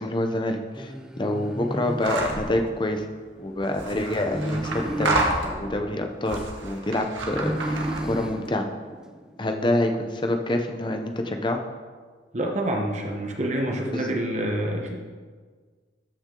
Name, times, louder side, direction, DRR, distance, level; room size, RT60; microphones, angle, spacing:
voice 1, 0.0-3.1 3.4-5.2 5.4-8.7 9.4-11.6 13.9-14.1, left 1 dB, 25° left, 5 dB, 0.7 m, -27 dB
sound 1, 0.7-2.9 4.0-6.7 7.2-9.5, equal, 5° right, 0.4 m, -33 dB
sound 2, 2.0-2.5 3.6-5.8 6.3-8.2, right 2 dB, 85° right, 1.6 m, -29 dB
voice 2, 12.3-15.0, right 1 dB, 35° right, 2 dB, 0.9 m, -27 dB
13.5 x 6.0 x 3.8 m, 1.5 s
head